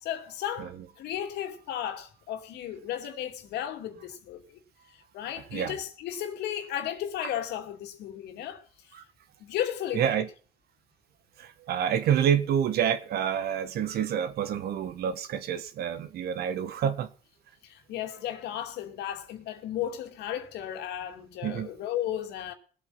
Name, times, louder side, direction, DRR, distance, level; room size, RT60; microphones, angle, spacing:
voice 1, 0.0-4.6 4.9-8.6 9.4-10.2 17.6-22.5, left 10 dB, 80° left, 2.6 m, -34 dB
voice 2, 9.9-10.3 11.4-17.1 21.4-21.7, right 9 dB, 65° right, 1.5 m, -28 dB
20.0 x 8.4 x 5.7 m
cardioid pair, 110°, 17 cm